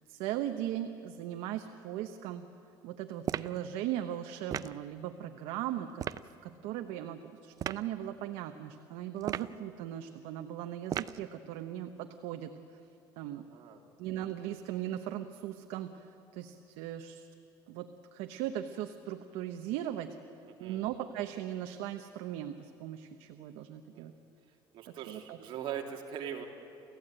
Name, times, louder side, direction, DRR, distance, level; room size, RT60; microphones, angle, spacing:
voice 1, 0.1-2.5 2.8-6.0 6.4-12.8 13.2-13.4 14.0-17.3 17.7-20.2 20.6-24.1 24.9-25.4, right 12 dB, 90° right, 6 dB, 1.0 m, -38 dB
sound 1, 3.2-3.6 4.5-4.8 6.0-6.2 7.6-7.8 9.2-9.6 10.9-11.2, right 9 dB, 40° right, 0.5 m, -35 dB
voice 2, 13.3-13.8 20.6-20.8 23.9-24.1 24.7-26.5, right 9 dB, 60° right, 2 dB, 2.7 m, -41 dB
28.5 x 15.0 x 8.9 m, 2.8 s
cardioid pair, 140°, 10 cm